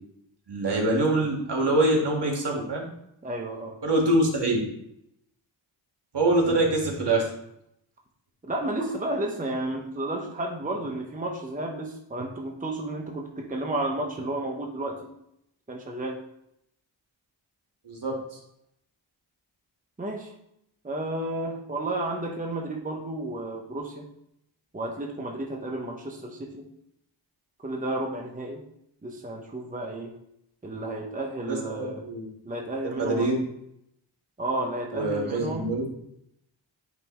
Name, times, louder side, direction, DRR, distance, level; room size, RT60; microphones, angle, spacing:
voice 1, 0.5-2.9 3.8-4.6 6.1-7.3 17.8-18.1 31.4-32.3 32.8-33.4 34.9-35.8, right 2 dB, 60° right, -1 dB, 1.8 m, -24 dB
voice 2, 3.2-3.8 6.4-6.7 8.4-15.1 15.7-16.2 20.0-20.3 20.8-24.1 24.7-26.7 27.6-28.6 29.0-30.1 30.6-32.0 32.4-33.3 34.4-35.7, right 1 dB, 15° right, 0 dB, 0.9 m, -32 dB
9.1 x 3.4 x 3.1 m, 0.78 s
wide cardioid pair, 70°, 46 cm